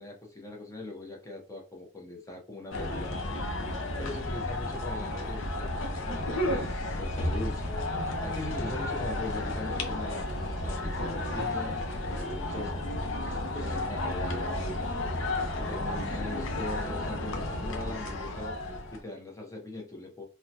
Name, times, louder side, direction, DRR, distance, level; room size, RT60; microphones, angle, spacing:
voice 1, 0.0-3.3 4.0-6.5 7.0-7.6 8.2-12.9 13.5-14.7 15.6-18.5 18.9-20.2, left 2 dB, 15° left, 0 dB, 0.7 m, -40 dB
sound 1, 2.7-19.0, left 1 dB, 85° left, 0.6 m, -32 dB
3.6 x 2.1 x 2.8 m, 0.35 s
head